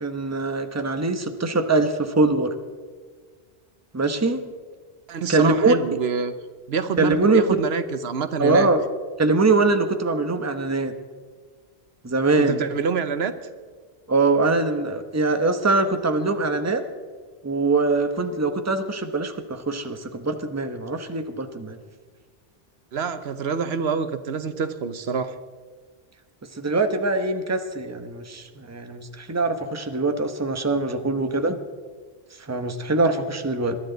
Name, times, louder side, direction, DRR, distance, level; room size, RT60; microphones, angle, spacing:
voice 1, 0.0-2.5 3.9-4.4 5.3-5.8 7.0-7.6 8.4-8.9 9.2-10.9 12.0-12.6 14.1-16.8 17.4-21.8 26.6-31.6 32.5-33.8, right 3 dB, 15° right, 7 dB, 0.9 m, -22 dB
voice 2, 5.1-6.3 6.7-8.7 12.4-13.3 22.9-25.3, right 5 dB, 75° right, 11 dB, 1.1 m, -26 dB
21.5 x 12.5 x 3.9 m, 1.5 s
omnidirectional pair, 1.1 m